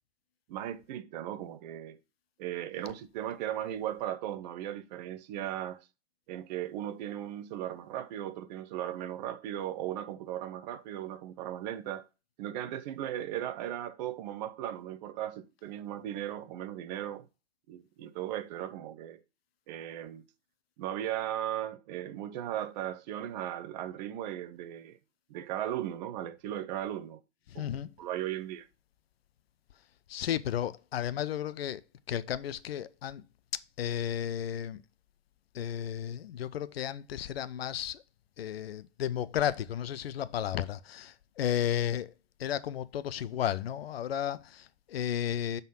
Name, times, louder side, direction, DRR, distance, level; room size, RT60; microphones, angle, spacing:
voice 1, 0.5-2.0 2.4-5.9 6.3-12.1 12.4-17.3 17.7-19.2 19.7-20.2 20.8-25.0 25.3-27.2 27.5-27.7 28.0-28.7, right 11 dB, 40° right, 0.7 m, -37 dB
voice 2, 27.5-27.9 30.1-33.2 33.8-34.8 35.5-38.0 38.4-42.1 42.4-45.6, left 10 dB, 60° left, 0.7 m, -33 dB
7.2 x 4.0 x 5.8 m
figure-of-eight pair, 115°, 33 cm